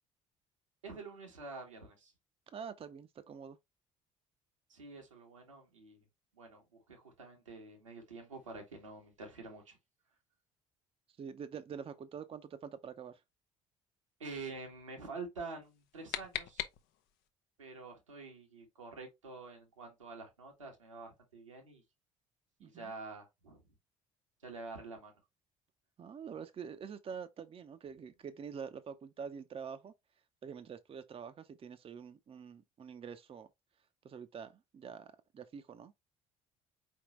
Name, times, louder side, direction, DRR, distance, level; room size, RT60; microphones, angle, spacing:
voice 1, 0.8-2.1 4.7-6.0 6.3-9.8 14.2-16.6 17.6-21.8 22.6-23.7 24.4-25.1, right 3 dB, 90° right, 1.5 m, -47 dB
voice 2, 2.5-3.6 11.2-13.2 22.6-22.9 26.0-29.9 30.4-33.5 34.0-35.9, right 6 dB, 35° right, 0.7 m, -46 dB
sound 1, 15.6-17.3, left 12 dB, 65° left, 0.7 m, -42 dB
4.8 x 3.6 x 3.1 m
hypercardioid pair, 50°, 16 cm